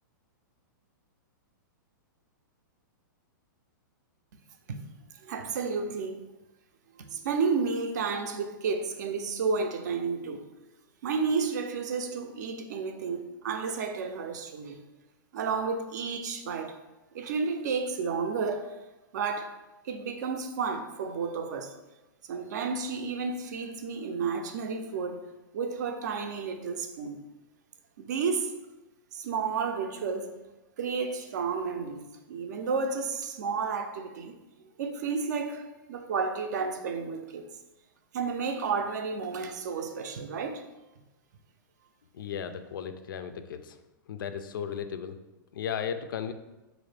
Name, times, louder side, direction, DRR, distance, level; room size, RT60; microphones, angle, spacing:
voice 1, 5.2-6.2 6.9-10.4 11.0-14.8 15.3-16.8 17.1-18.7 19.1-19.5 19.8-21.7 22.3-25.2 25.5-27.2 28.0-28.5 29.1-30.4 30.8-32.0 32.3-34.3 34.8-37.5 38.1-40.6, right 5 dB, 60° right, 0.4 m, -31 dB
voice 2, 42.1-43.8 44.1-45.1 45.5-46.3, left 8 dB, 85° left, 0.4 m, -35 dB
3.9 x 2.6 x 3.3 m
hypercardioid pair, 170°, 11 cm